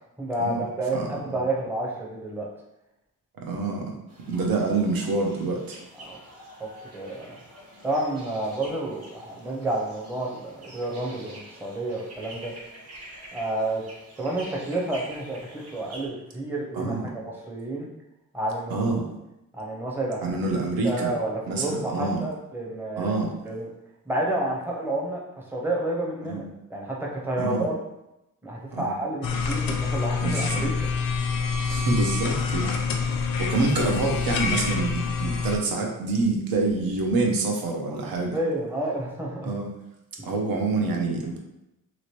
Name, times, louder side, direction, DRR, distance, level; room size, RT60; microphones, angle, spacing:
voice 1, 0.2-2.5 6.0-6.2 6.6-7.4 7.8-12.5 13.3-13.8 14.2-17.9 18.3-18.9 19.5-20.2 20.8-23.2 23.4-23.7 24.1-26.4 26.7-27.8 28.4-30.9 33.1-33.3 38.3-39.5, right 1 dB, 5° right, -3 dB, 0.5 m, -30 dB
voice 2, 0.9-1.4 3.4-3.9 4.3-5.8 16.7-17.1 18.7-19.1 20.2-21.1 21.5-22.2 23.0-23.3 26.2-26.5 27.4-27.7 28.7-29.0 30.2-30.7 31.7-32.7 33.4-38.4 39.4-39.7 40.2-41.4, right 3 dB, 85° right, 1 dB, 0.7 m, -26 dB
sound 1, 4.1-16.1, right 1 dB, 45° right, 0.9 m, -47 dB
sound 2, 29.2-35.6, left 5 dB, 75° left, 0.5 m, -26 dB
3.0 x 3.0 x 3.0 m, 0.89 s
wide cardioid pair, 140°, 34 cm